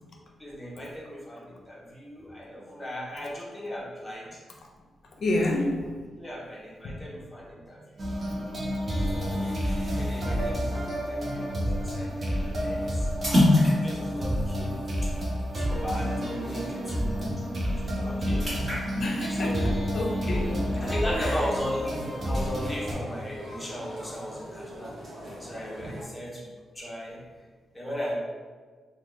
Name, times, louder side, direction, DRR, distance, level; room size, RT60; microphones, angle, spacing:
voice 1, 0.4-4.4 6.2-8.1 9.0-9.5 9.9-13.1 13.5-15.1 15.5-18.4 19.3-19.7 20.8-24.9 25.4-26.5 26.7-27.2 27.7-28.1, equal, 15° left, -5 dB, 0.7 m, -37 dB
voice 2, 5.2-5.9 6.8-7.0 9.3-9.4 15.5-15.6 18.9-20.6 21.2-21.4, left 1 dB, 55° left, 0 dB, 0.5 m, -29 dB
sound 1, 8.0-22.9, equal, 35° right, 0.6 m, -29 dB
sound 2, 9.0-17.0 17.4-17.5 17.8-20.8 21.2-22.8, left 1 dB, 15° right, 1.2 m, -30 dB
sound 3, 20.3-26.0, equal, 55° right, 1.0 m, -42 dB
3.7 x 2.1 x 3.0 m, 1.5 s
wide cardioid pair, 155°, 0 cm